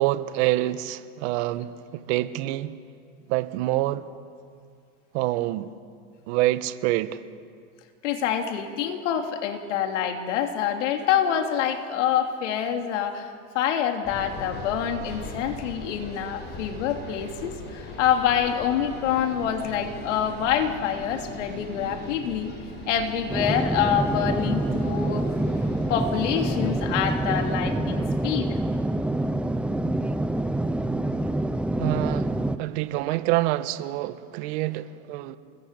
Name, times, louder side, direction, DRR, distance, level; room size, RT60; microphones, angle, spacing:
voice 1, 0.0-2.7 3.3-4.0 5.1-5.7 6.3-7.2 31.8-32.3 32.6-35.4, right 16 dB, 65° right, 1.4 m, -26 dB
voice 2, 8.0-13.3 13.5-22.5 22.9-25.2 25.9-28.6, left 9 dB, 80° left, 3.1 m, -26 dB
sound 1, 14.0-27.8, left 1 dB, 30° left, 7.8 m, -39 dB
sound 2, 23.3-32.6, right 1 dB, 5° right, 0.7 m, -26 dB
28.5 x 20.0 x 8.4 m
supercardioid pair, 130°, 36 cm